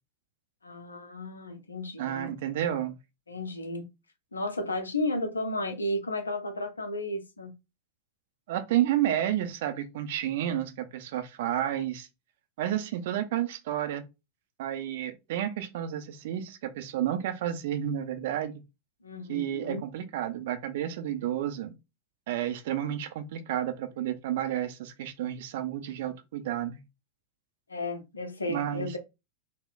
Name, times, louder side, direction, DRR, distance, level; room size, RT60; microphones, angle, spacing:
voice 1, 0.6-2.3 3.3-3.9 4.3-7.5 19.0-19.8 27.7-29.0, left 1 dB, 75° left, 0.6 m, -33 dB
voice 2, 2.0-3.0 8.5-12.1 12.6-14.0 14.6-18.6 19.3-21.7 22.3-26.8 28.5-28.9, right 11 dB, 55° right, 0.5 m, -31 dB
4.1 x 2.1 x 2.5 m
figure-of-eight pair, 90°, 0 cm